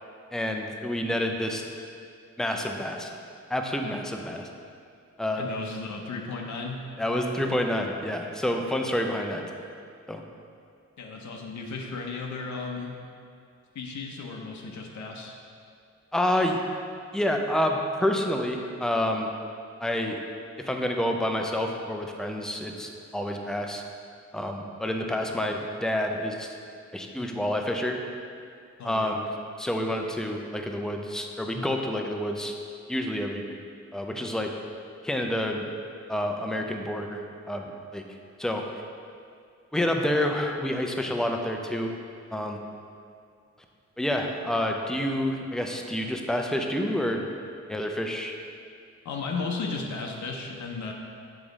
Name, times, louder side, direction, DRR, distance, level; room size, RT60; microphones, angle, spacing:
voice 1, 0.3-1.6 2.4-3.1 3.5-4.5 5.2-5.5 7.0-9.6 10.1-10.2 16.1-16.6 17.1-19.3 19.8-20.2 20.6-23.8 24.3-26.6 26.9-28.0 28.8-29.3 29.6-32.5 32.9-33.4 33.9-34.5 35.0-35.7 36.1-38.0 38.4-38.6 39.7-42.0 42.3-42.6 44.0-47.2 47.7-48.3, left 1 dB, ahead, 3 dB, 0.4 m, -28 dB
voice 2, 5.4-6.8 11.0-12.9 13.7-15.4 28.8-29.2 49.0-50.9, left 4 dB, 80° left, 0 dB, 0.7 m, -35 dB
7.1 x 4.9 x 3.9 m, 2.3 s
wide cardioid pair, 170°, 29 cm